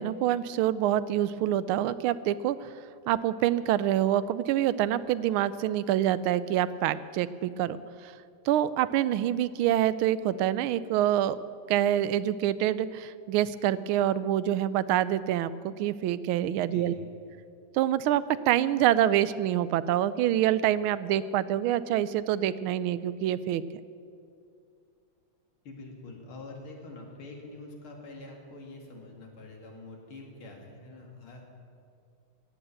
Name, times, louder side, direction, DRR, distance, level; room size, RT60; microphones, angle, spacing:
voice 1, 0.0-2.7 3.1-8.1 8.4-11.4 11.7-16.9 17.7-23.6, right 12 dB, 85° right, 16 dB, 1.4 m, -26 dB
voice 2, 25.6-31.4, left 2 dB, 80° left, 1 dB, 3.0 m, -45 dB
16.0 x 8.7 x 8.7 m, 2.4 s
omnidirectional pair, 2.3 m